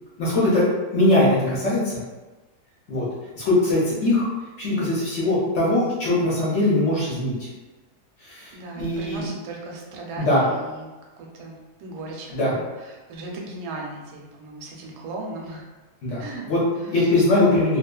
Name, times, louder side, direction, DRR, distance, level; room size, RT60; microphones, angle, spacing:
voice 1, 0.2-0.6 0.9-2.0 2.9-3.1 3.4-4.3 4.6-7.3 8.2-9.3 10.2-10.4 12.3-12.5 16.0-17.8, left 2 dB, 60° left, -7 dB, 0.8 m, -21 dB
voice 2, 8.5-10.9 11.2-15.6 16.2-16.4 16.8-17.6, right 2 dB, 85° right, -1 dB, 1.1 m, -37 dB
2.6 x 2.3 x 2.2 m, 1.2 s
omnidirectional pair, 1.7 m